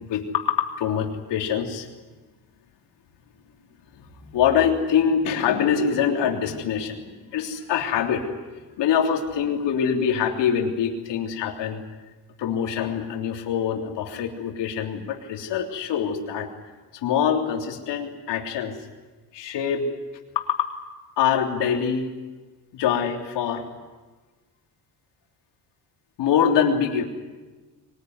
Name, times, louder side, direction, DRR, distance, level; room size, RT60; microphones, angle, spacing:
voice 1, 0.1-1.9 4.0-8.2 8.5-11.8 12.4-16.5 16.9-18.8 19.3-19.9 20.4-20.7 21.2-22.1 22.7-23.7 26.2-27.0, left 8 dB, 80° left, 1 dB, 3.4 m, -24 dB
24.0 x 20.0 x 9.6 m, 1.3 s
cardioid pair, 120°, 41 cm